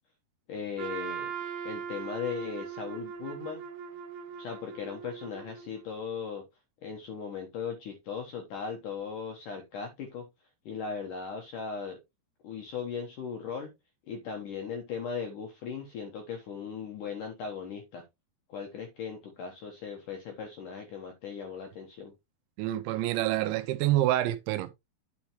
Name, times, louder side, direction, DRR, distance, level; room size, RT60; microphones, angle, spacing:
voice 1, 0.5-1.3 1.6-3.6 4.4-6.4 6.8-10.3 10.7-12.0 12.4-13.7 14.1-18.0 18.5-22.1, left 6 dB, 70° left, 2.0 m, -38 dB
Trumpet, 0.8-5.9, right 7 dB, 65° right, 2.5 m, -40 dB
voice 2, 22.6-24.7, right 14 dB, 85° right, 3.0 m, -27 dB
9.8 x 6.0 x 3.1 m
omnidirectional pair, 5.4 m